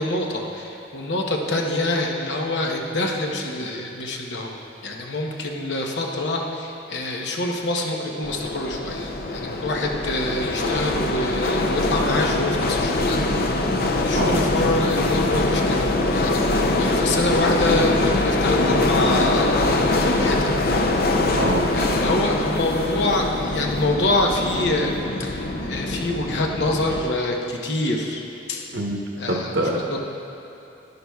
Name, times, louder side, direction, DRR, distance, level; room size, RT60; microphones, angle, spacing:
voice 1, 0.0-4.6 4.8-13.2 14.0-20.5 21.7-24.9 25.2-28.2 28.5-28.8 29.2-30.0, left 2 dB, 75° left, 1 dB, 0.9 m, -26 dB
sound 1, 8.2-27.0, left 2 dB, 55° left, 0.5 m, -23 dB
voice 2, 21.3-21.7 28.7-29.0 29.3-30.0, right 1 dB, 65° right, 0 dB, 1.0 m, -24 dB
11.0 x 10.5 x 2.3 m, 2.8 s
head